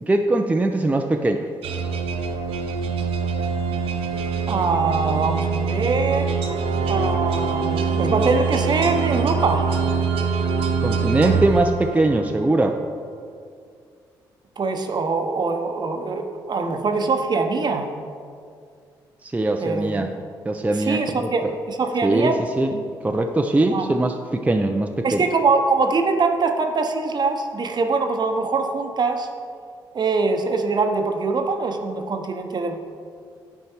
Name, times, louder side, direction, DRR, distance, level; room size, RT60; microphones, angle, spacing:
voice 1, 0.0-1.5 10.8-12.8 19.2-20.1 20.5-21.5 22.0-25.2, right 2 dB, 15° right, 4 dB, 0.5 m, -21 dB
sound 1, 1.6-12.3, right 5 dB, 75° right, 0.7 m, -24 dB
voice 2, 4.5-6.4 6.9-9.7 14.6-17.9 19.6-19.9 20.9-22.4 23.7-23.9 25.0-29.3 29.9-32.8, right 4 dB, 45° right, 6 dB, 0.9 m, -23 dB
9.6 x 4.5 x 4.4 m, 2.2 s
supercardioid pair, 55°, 10 cm